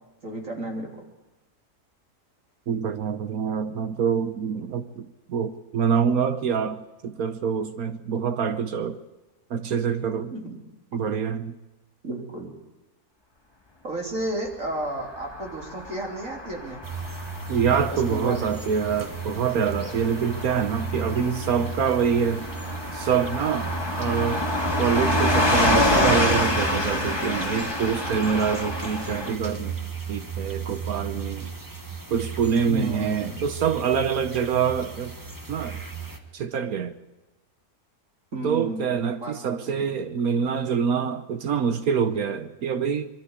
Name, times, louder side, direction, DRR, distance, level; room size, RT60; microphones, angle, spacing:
voice 1, 0.2-1.0 10.3-10.6 12.0-12.5 13.8-16.8 17.9-18.5 32.6-33.4 38.3-39.9, right 1 dB, 60° right, 4.0 m, -32 dB
voice 2, 2.7-9.0 9.5-10.3 10.9-11.5 17.5-22.5 22.9-23.7 24.0-24.4 24.8-31.5 32.1-35.1 35.5-35.8 36.3-36.9 38.4-43.1, right 7 dB, 75° right, 1.4 m, -25 dB
Car passing by / Truck, 15.0-29.3, left 1 dB, 15° left, 2.0 m, -27 dB
sound 1, 16.8-36.2, right 5 dB, 15° right, 1.5 m, -35 dB
22.5 x 14.0 x 8.2 m
omnidirectional pair, 1.6 m